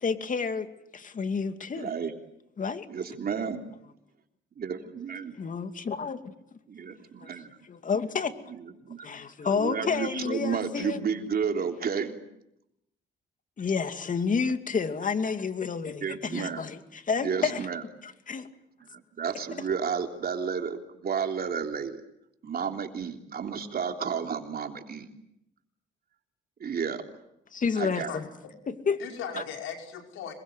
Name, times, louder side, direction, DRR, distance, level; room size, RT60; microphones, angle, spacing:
voice 1, 0.0-1.9 2.6-2.9 5.3-6.3 7.2-7.3 7.6-8.3 9.0-11.0 13.6-17.7 18.0-18.5 27.5-28.3 28.7-29.0 29.4-29.5, left 5 dB, 40° left, 8 dB, 2.5 m, -30 dB
voice 2, 1.7-2.1 2.9-3.6 4.6-5.4 6.7-7.5 8.8-9.1 9.5-12.1 16.0-16.6 17.2-17.8 18.9-22.0 22.4-25.1 26.6-27.0 27.8-28.1 29.3-29.4, right 6 dB, 50° right, 4 dB, 3.5 m, -32 dB
voice 3, 27.7-28.2 29.0-30.3, left 8 dB, 90° left, 3 dB, 5.5 m, -39 dB
26.5 x 22.5 x 9.3 m, 0.81 s
cardioid pair, 90°, 20 cm